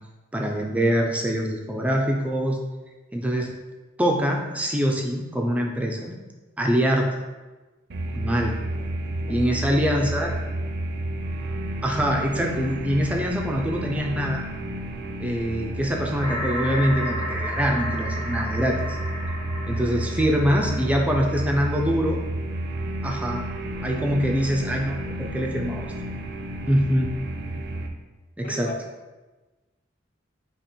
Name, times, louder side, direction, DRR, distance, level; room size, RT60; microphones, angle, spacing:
voice 1, 0.3-2.6 3.1-3.5 4.0-6.2 6.6-7.1 8.1-8.6 9.3-10.4 11.8-14.5 15.2-19.0 19.7-22.2 23.0-23.5 23.8-25.8 26.7-27.1 28.4-28.7, equal, 5° right, 1 dB, 0.4 m, -24 dB
sound 1, 7.9-27.9, right 1 dB, 55° right, 0.5 m, -31 dB
voice 2, 8.4-9.7 19.8-20.3 20.8-21.1 23.8-24.1 28.4-28.8, left 2 dB, 45° left, 3 dB, 0.6 m, -42 dB
sound 2, 16.2-21.9, equal, 20° left, 0.8 m, -34 dB
4.0 x 2.9 x 4.4 m, 1.2 s
head